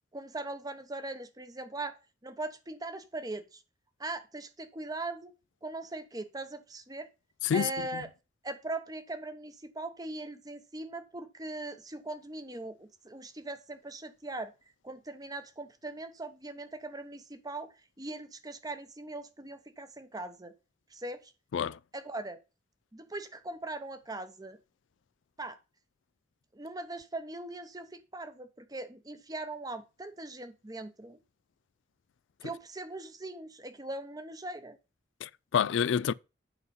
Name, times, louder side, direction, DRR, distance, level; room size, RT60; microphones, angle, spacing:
voice 1, 0.1-2.0 2.2-3.6 4.0-5.3 5.6-7.1 7.5-8.1 8.4-14.5 14.8-20.5 20.9-21.3 21.9-22.4 22.9-24.6 25.4-25.6 26.5-31.2 32.4-34.8, right 2 dB, 20° right, 0.9 m, -40 dB
voice 2, 7.4-8.0 21.5-21.8 35.2-36.1, left 7 dB, 80° left, 0.4 m, -28 dB
8.1 x 5.6 x 5.4 m
head